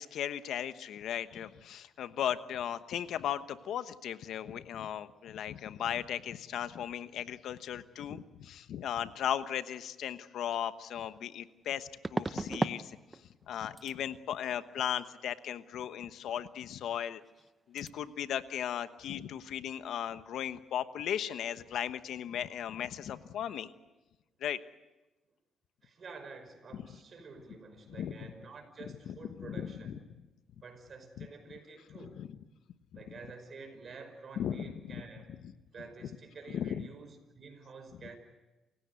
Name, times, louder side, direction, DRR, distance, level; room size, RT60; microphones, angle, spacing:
voice 1, 0.0-13.0 13.5-17.2 17.7-23.7 24.4-24.6 28.0-28.1 29.1-30.0 31.2-31.3 32.2-32.3 34.4-35.0 35.3-35.5 36.5-36.8, left 10 dB, 75° left, 12 dB, 1.1 m, -37 dB
sound 1, 10.5-10.6 12.0-12.8 13.1-13.5 13.8-14.0 16.9-17.0 17.3-17.5 17.8-17.9, right 2 dB, 20° right, 0.8 m, -35 dB
voice 2, 25.8-30.1 30.6-32.2 32.9-35.4 35.7-38.2, right 4 dB, 45° right, 7 dB, 5.5 m, -49 dB
29.0 x 16.5 x 8.2 m, 1.1 s
cardioid pair, 90°, 0 cm